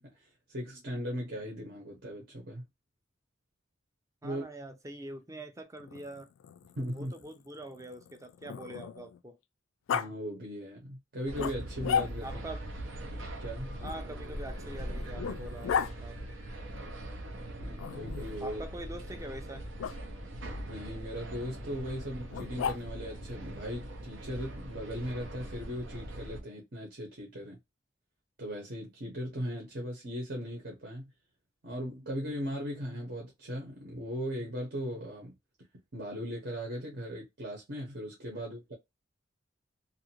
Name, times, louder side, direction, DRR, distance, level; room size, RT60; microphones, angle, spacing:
voice 1, 0.0-2.6 4.2-4.4 6.8-7.1 9.9-12.3 13.4-13.8 17.6-18.6 20.7-27.6 28.4-31.1 31.6-35.3 35.9-38.7, equal, 60° right, 1.0 m, -38 dB
voice 2, 4.2-6.3 6.9-9.4 12.2-12.6 13.8-16.4 18.4-19.7 38.4-38.5, right 1 dB, 15° right, 0.5 m, -44 dB
Growling, 5.8-9.2 9.9-10.1 11.4-12.5 13.8-15.9 17.8-18.5 19.8-20.0 22.3-23.1, left 7 dB, 90° left, 0.3 m, -36 dB
sound 1, 11.3-26.4, right 1 dB, 85° right, 0.8 m, -41 dB
2.7 x 2.5 x 2.9 m
head